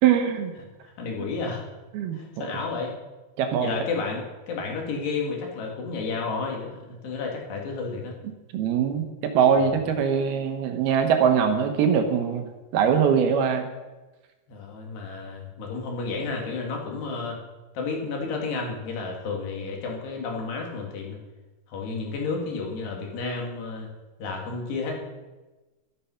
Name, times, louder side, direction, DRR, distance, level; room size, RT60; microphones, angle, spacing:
voice 1, 0.0-0.5 1.9-2.5 3.4-3.7 8.5-13.7, right 7 dB, 75° right, 6 dB, 2.9 m, -22 dB
voice 2, 0.8-1.6 2.1-2.9 3.6-8.1 9.5-9.7 14.5-17.4 17.7-21.2 21.7-23.9 24.2-24.9, left 4 dB, 80° left, 0 dB, 4.5 m, -31 dB
13.0 x 12.5 x 5.7 m, 1.2 s
omnidirectional pair, 4.7 m